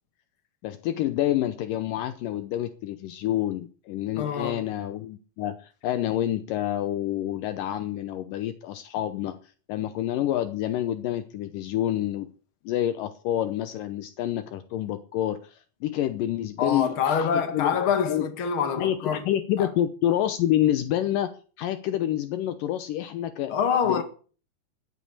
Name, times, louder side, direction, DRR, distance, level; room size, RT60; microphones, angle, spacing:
voice 1, 0.6-9.4 9.7-12.3 12.7-17.7 18.1-18.3 18.8-23.6 23.8-24.0, left 12 dB, 75° left, 2.3 m, -28 dB
voice 2, 4.2-4.6 16.6-19.3 19.6-19.7 23.5-24.0, left 7 dB, 40° left, 2.3 m, -25 dB
11.5 x 11.0 x 6.6 m
omnidirectional pair, 4.2 m